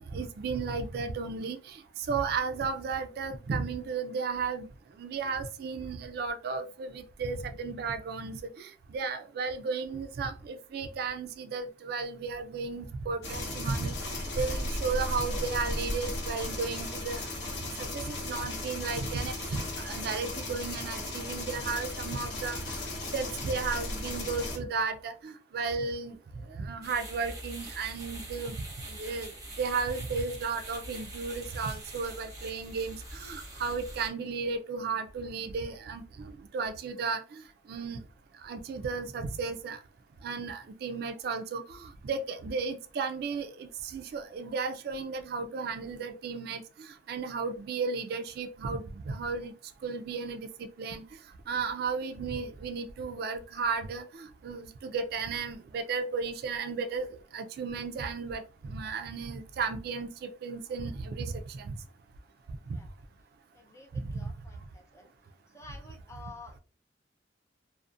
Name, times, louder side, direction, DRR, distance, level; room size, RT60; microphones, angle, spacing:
voice 1, 0.1-1.8 2.1-4.7 5.0-17.3 17.8-22.8 23.1-26.1 26.5-29.3 29.6-37.4 37.7-38.0 38.4-39.8 40.2-46.6 47.1-49.5 49.8-51.0 51.5-57.1 57.3-61.8 62.7-62.8 63.9-64.3, right 4 dB, 60° right, 0.3 m, -34 dB
sound 1, 13.2-24.6, left 1 dB, 75° left, 0.7 m, -36 dB
sound 2, 26.8-34.1, right 1 dB, 20° right, 0.8 m, -44 dB
voice 2, 63.5-65.1 65.5-66.6, left 3 dB, 15° left, 0.4 m, -50 dB
2.4 x 2.0 x 2.5 m
head